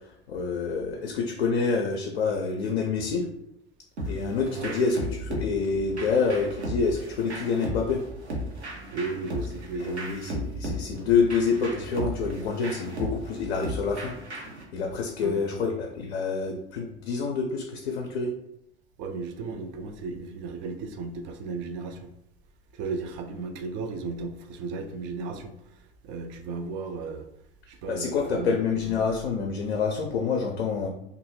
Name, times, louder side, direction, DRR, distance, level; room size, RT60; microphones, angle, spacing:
voice 1, 0.3-3.3 4.1-8.0 9.9-14.1 14.7-18.3 27.9-30.9, left 5 dB, 70° left, 1 dB, 0.5 m, -27 dB
sound 1, 4.0-14.6, equal, 85° right, 0.8 m, -35 dB
voice 2, 8.9-10.0 15.2-15.7 19.0-22.1 22.7-27.3 27.7-28.8, right 4 dB, 40° right, 5 dB, 0.4 m, -35 dB
2.7 x 2.5 x 2.9 m, 0.79 s
figure-of-eight pair, 75°, 32 cm